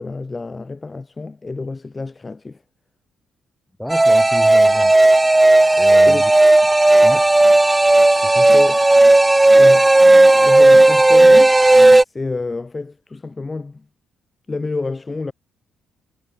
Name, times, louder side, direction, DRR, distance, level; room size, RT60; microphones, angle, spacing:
voice 1, 0.0-2.6 6.1-6.2 8.5-8.8 9.6-11.6 12.1-13.9 14.5-15.3, left 3 dB, 25° left, 0.7 m, -29 dB
voice 2, 3.8-4.9 5.8-6.3 7.0-7.3 8.1-8.5, equal, 5° left, 1.2 m, -30 dB
sound 1, 3.9-12.0, right 2 dB, 15° right, 0.4 m, -12 dB
cardioid pair, 90°, 0 cm